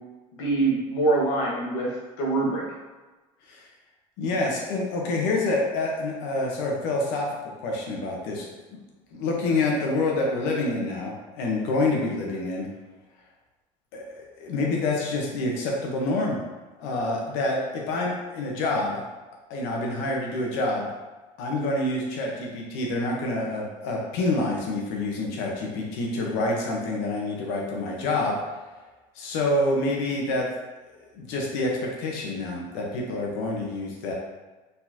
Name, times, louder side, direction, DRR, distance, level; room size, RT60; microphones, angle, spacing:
voice 1, 0.4-2.6, right 2 dB, 85° left, -2 dB, 1.4 m, -24 dB
voice 2, 4.2-7.3 7.6-8.5 8.7-8.8 9.1-12.7 13.9-14.0 14.4-16.4 16.8-19.0 19.5-20.9 21.4-28.4 29.1-30.5 31.1-34.1, left 2 dB, 70° left, -1 dB, 1.1 m, -27 dB
4.5 x 4.0 x 2.9 m, 1.2 s
cardioid pair, 180°, 14 cm